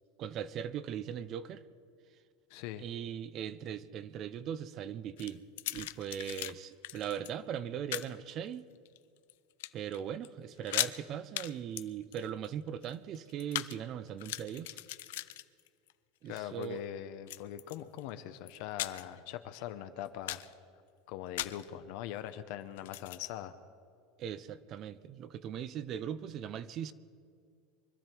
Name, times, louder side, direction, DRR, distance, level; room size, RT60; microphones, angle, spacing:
voice 1, 0.2-1.6 2.8-5.4 5.7-8.6 9.7-14.8 16.2-16.8 24.2-26.9, right 9 dB, 35° right, 16 dB, 0.6 m, -39 dB
voice 2, 2.5-2.8 16.3-20.4 21.1-23.6, left 11 dB, 60° left, 9 dB, 0.8 m, -42 dB
sound 1, 5.2-6.5 6.8-7.3 7.9-8.1 8.8-9.3 9.6-10.0 10.2-10.3 10.6-11.0 11.4-11.5 11.8-13.8 14.1-15.9 16.3-16.7 17.3-18.0 18.5-19.2 19.6-19.7 20.1-20.5 21.4-21.7 22.8-23.3, left 16 dB, 80° left, 0.5 m, -38 dB
24.5 x 13.0 x 4.5 m, 2.2 s
supercardioid pair, 155°, 0 cm